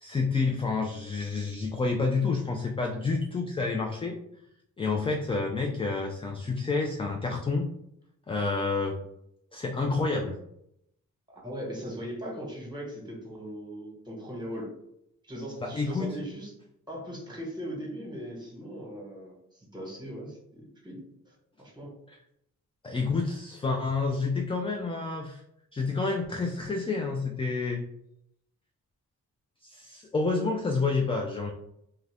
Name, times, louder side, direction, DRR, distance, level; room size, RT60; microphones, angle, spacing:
voice 1, 0.0-4.2 4.8-7.7 8.3-9.0 9.5-10.4 15.6-16.1 22.8-25.4 25.7-27.8 29.6-31.5, left 4 dB, 15° left, 2 dB, 0.3 m, -29 dB
voice 2, 11.3-14.7 15.3-16.5 16.9-21.0 21.3-21.9, equal, 15° right, -2 dB, 1.2 m, -39 dB
2.3 x 2.2 x 3.3 m, 0.76 s
cardioid pair, 55°, 34 cm